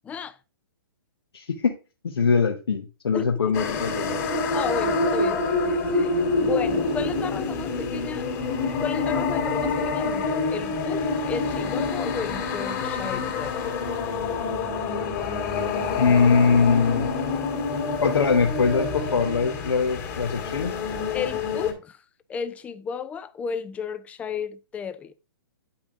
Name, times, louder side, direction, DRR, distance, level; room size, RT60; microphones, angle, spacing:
voice 1, 0.0-0.4 3.1-3.6 4.5-8.3 8.8-13.7 21.1-22.0 22.3-25.1, left 6 dB, 10° left, 0.3 m, -33 dB
voice 2, 1.3-1.8 2.0-4.2 16.0-17.1 18.0-20.8, left 5 dB, 85° left, 0.9 m, -22 dB
sound 1, 3.5-21.7, left 3 dB, 40° left, 1.9 m, -27 dB
8.7 x 5.6 x 2.4 m
hypercardioid pair, 135°, 13 cm